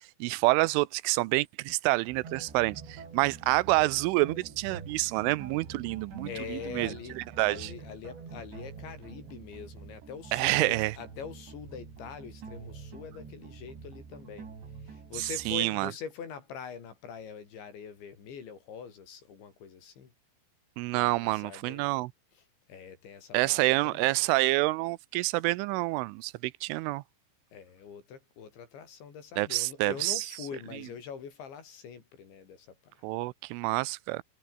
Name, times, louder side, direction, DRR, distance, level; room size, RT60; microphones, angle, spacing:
voice 1, 0.2-7.7 10.3-10.9 15.2-15.9 20.8-22.1 23.3-27.0 29.4-30.2 33.0-34.2, right 21 dB, 90° right, 3.2 m, -28 dB
sound 1, 2.1-15.6, right 5 dB, 65° right, 8.2 m, -46 dB
voice 2, 6.3-14.5 14.8-20.1 20.9-21.9 22.7-24.2 27.5-33.0, left 7 dB, 70° left, 6.7 m, -44 dB
omnidirectional pair, 5.6 m